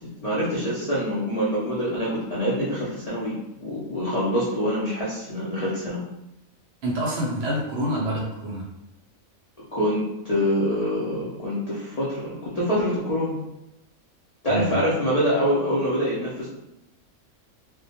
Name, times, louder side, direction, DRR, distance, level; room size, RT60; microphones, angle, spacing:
voice 1, 0.0-3.3 3.6-6.0 9.7-13.4 14.4-16.5, equal, 75° left, -7 dB, 0.3 m, -25 dB
voice 2, 6.8-8.7 14.5-14.8, right 1 dB, 65° right, -3 dB, 0.7 m, -27 dB
2.2 x 2.2 x 2.7 m, 0.87 s
omnidirectional pair, 1.4 m